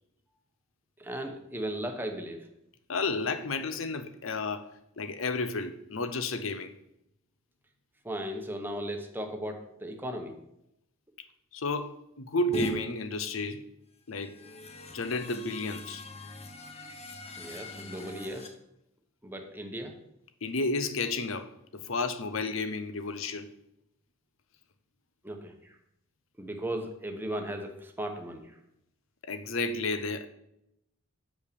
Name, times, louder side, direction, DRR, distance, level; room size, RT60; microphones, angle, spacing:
voice 1, 1.0-2.5 8.0-10.4 17.4-18.5 19.2-19.9 25.2-25.8 26.4-28.6, right 1 dB, 10° right, 1.0 m, -36 dB
voice 2, 2.9-4.7 5.0-6.7 11.5-13.6 14.1-14.4 14.9-16.0 20.4-23.5 29.3-30.3, left 3 dB, 75° left, 0.8 m, -32 dB
sound 1, 12.5-12.7 14.1-18.5, left 1 dB, 30° left, 0.9 m, -41 dB
6.5 x 5.4 x 6.9 m
head